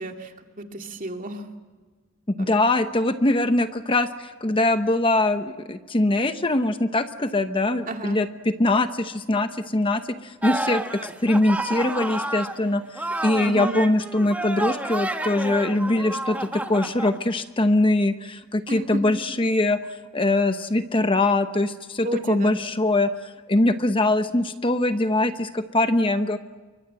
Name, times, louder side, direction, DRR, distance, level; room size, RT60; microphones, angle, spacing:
voice 1, 0.0-1.5 2.4-2.6 7.9-8.2 13.4-13.9 18.7-19.0 22.0-22.6, right 2 dB, 40° right, 4 dB, 2.6 m, -32 dB
voice 2, 2.3-19.8 20.1-26.4, left 2 dB, 25° left, 9 dB, 0.9 m, -22 dB
sound 1, 10.4-12.6 12.9-17.2, right 1 dB, 5° right, 1.5 m, -30 dB
29.0 x 24.5 x 7.7 m, 1.3 s
head